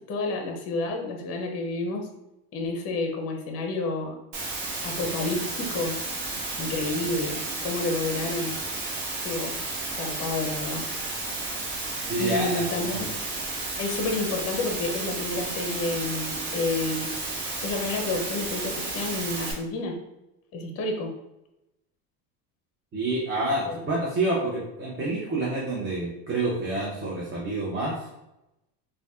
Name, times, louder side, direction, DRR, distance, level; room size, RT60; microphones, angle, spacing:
voice 1, 0.1-2.1 2.5-4.2 4.8-6.0 6.6-8.6 9.2-9.6 9.9-10.8 12.2-13.2 13.8-17.1 17.6-20.0 20.5-21.1 23.7-23.8, left 2 dB, 30° left, 3 dB, 0.6 m, -30 dB
Water, 4.3-19.5, right 2 dB, 45° right, 1.0 m, -32 dB
voice 2, 12.1-13.0 22.9-28.1, right 2 dB, 25° right, -5 dB, 0.7 m, -28 dB
3.9 x 2.3 x 2.3 m, 0.92 s
supercardioid pair, 110°, 48 cm